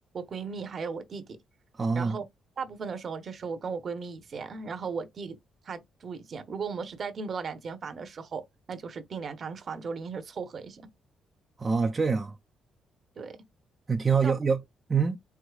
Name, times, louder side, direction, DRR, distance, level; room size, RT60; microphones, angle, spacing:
voice 1, 0.0-1.4 1.9-2.2 2.6-5.4 5.6-10.8 13.2-13.4 14.2-14.3, right 5 dB, 50° right, 0.9 m, -36 dB
voice 2, 1.8-2.2 11.6-12.4 13.9-14.6 14.9-15.2, right 5 dB, 30° right, 0.6 m, -25 dB
4.8 x 4.0 x 2.4 m
cardioid pair, 90°, 0 cm